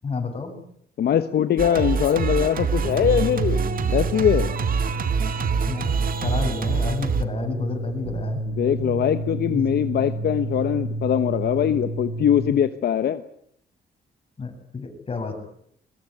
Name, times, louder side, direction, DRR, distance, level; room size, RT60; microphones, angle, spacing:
voice 1, 0.0-0.5 5.7-5.9 6.2-8.4 9.5-9.6 14.4-15.5, left 4 dB, 35° left, 4 dB, 7.8 m, -30 dB
voice 2, 1.0-3.6 3.9-4.5 8.4-13.2, left 9 dB, 70° left, 10 dB, 1.2 m, -22 dB
Singing, 1.6-7.2, right 6 dB, 55° right, 2.1 m, -25 dB
sound 1, 2.8-12.5, right 2 dB, 30° right, 7.8 m, -30 dB
23.0 x 21.0 x 9.9 m, 0.69 s
cardioid pair, 125°, 17 cm